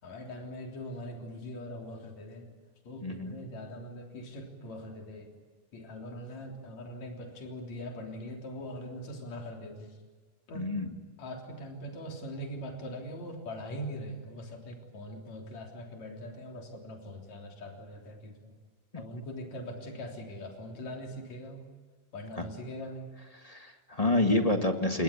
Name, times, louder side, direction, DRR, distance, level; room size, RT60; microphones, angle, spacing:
voice 1, 0.0-2.5 2.8-5.3 5.7-10.0 10.5-10.7 11.2-18.5 19.0-21.7 22.1-23.1, equal, 60° left, 1 dB, 4.7 m, -42 dB
voice 2, 3.0-3.3 10.5-10.9 22.4-22.5 23.4-25.0, left 2 dB, 20° left, 5 dB, 0.9 m, -28 dB
28.5 x 21.0 x 8.6 m, 1.4 s
omnidirectional pair, 3.6 m